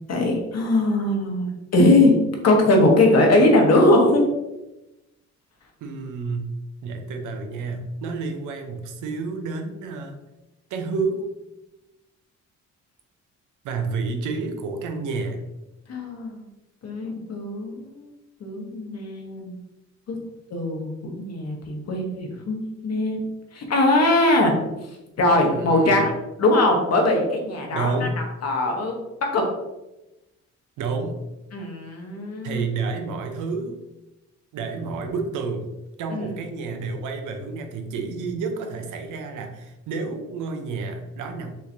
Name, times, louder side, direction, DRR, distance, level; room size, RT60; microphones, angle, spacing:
voice 1, 0.1-2.1 2.4-4.2 15.9-16.5 16.8-18.0 18.4-19.6 20.1-20.2 20.5-23.2 23.5-24.5 25.2-28.1 28.4-29.0 29.3-29.5 31.5-32.6 36.1-36.3, left 2 dB, 55° left, 1 dB, 1.2 m, -20 dB
voice 2, 5.8-6.5 6.8-10.2 10.7-11.3 13.6-15.4 25.5-26.0 27.7-28.2 30.8-31.2 32.4-33.8 34.5-35.7 36.0-41.5, right 4 dB, 85° right, 5 dB, 0.8 m, -29 dB
5.5 x 3.1 x 2.7 m, 0.97 s
cardioid pair, 90°, 30 cm